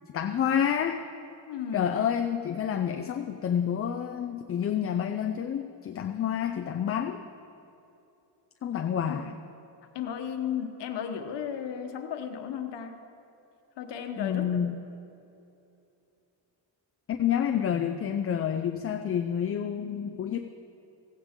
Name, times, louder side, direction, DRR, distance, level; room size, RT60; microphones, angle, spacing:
voice 1, 0.1-1.0 1.7-7.2 8.6-9.3 14.2-14.8 17.1-20.4, left 9 dB, 35° left, 5 dB, 0.4 m, -28 dB
voice 2, 1.5-2.0 9.1-9.2 9.9-13.0 13.8-14.7, left 8 dB, 65° left, 5 dB, 1.2 m, -34 dB
16.5 x 16.0 x 3.7 m, 2.8 s
cardioid pair, 170°, 45 cm